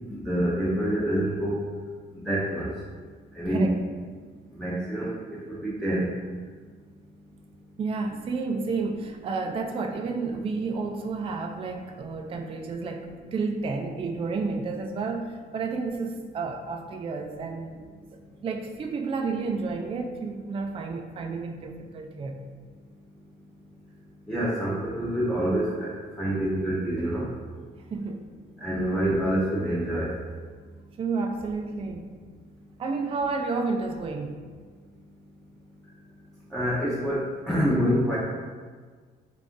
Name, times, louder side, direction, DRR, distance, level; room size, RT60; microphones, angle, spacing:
voice 1, 0.1-1.7 2.2-2.7 3.3-3.6 4.5-5.2 5.5-6.1 24.3-27.3 28.6-30.2 36.5-38.2, right 1 dB, 5° left, -9 dB, 0.7 m, -26 dB
voice 2, 7.8-17.8 18.1-22.4 27.9-28.2 31.0-32.1 32.8-34.4, right 4 dB, 30° right, 4 dB, 0.3 m, -31 dB
3.5 x 2.5 x 3.6 m, 1.5 s
cardioid pair, 90°, 20 cm